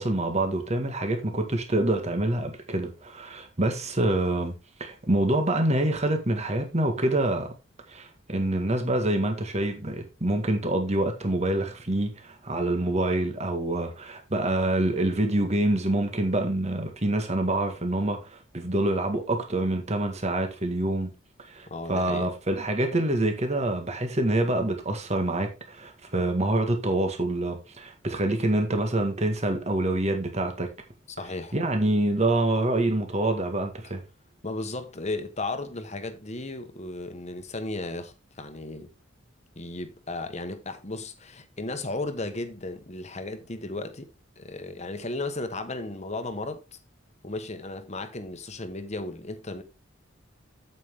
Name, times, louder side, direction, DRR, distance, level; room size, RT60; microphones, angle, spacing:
voice 1, 0.0-4.5 4.8-7.5 7.9-21.1 21.5-30.7 31.5-34.0, right 1 dB, 35° right, 1.8 m, -26 dB
voice 2, 21.7-22.3 31.1-31.6 34.4-38.9 39.6-44.1 44.4-46.8 47.2-49.6, left 2 dB, 35° left, 1.3 m, -35 dB
8.6 x 8.4 x 3.7 m
head